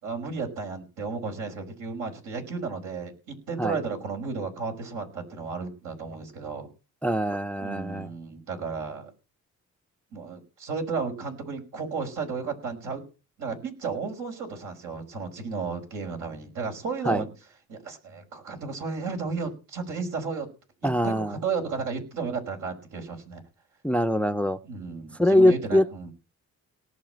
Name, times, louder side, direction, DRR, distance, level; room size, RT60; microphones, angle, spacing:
voice 1, 0.0-6.7 7.6-9.1 10.1-13.0 13.4-17.3 17.7-20.5 20.8-23.4 24.6-26.1, right 5 dB, 80° right, 5.5 m, -33 dB
voice 2, 7.0-8.1 17.1-17.2 20.8-21.4 23.8-24.6 25.2-25.9, left 1 dB, 5° left, 0.6 m, -23 dB
18.5 x 7.1 x 7.8 m
cardioid pair, 90°, 30 cm